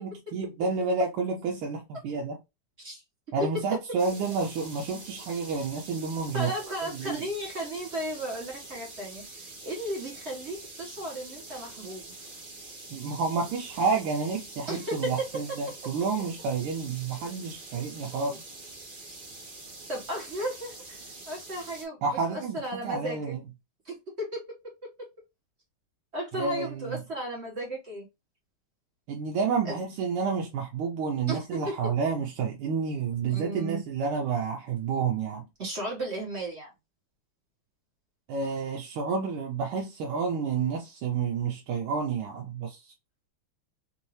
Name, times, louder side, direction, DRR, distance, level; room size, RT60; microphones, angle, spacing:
voice 1, 0.0-2.4 3.3-6.5 6.9-7.2 12.9-18.4 22.0-23.4 26.3-27.0 29.1-35.4 38.3-42.8, right 5 dB, 85° right, 1.6 m, -30 dB
sound 1, 4.0-21.8, right 2 dB, 50° right, 0.5 m, -45 dB
voice 2, 6.3-12.1 14.7-15.3 18.3-18.4 19.9-21.0 21.3-23.3 23.8-24.4 25.0-25.1 26.1-28.1 29.6-29.8 31.3-31.8 33.3-33.8 35.6-36.7, right 1 dB, 35° right, 1.3 m, -35 dB
3.8 x 2.7 x 3.0 m
omnidirectional pair, 2.3 m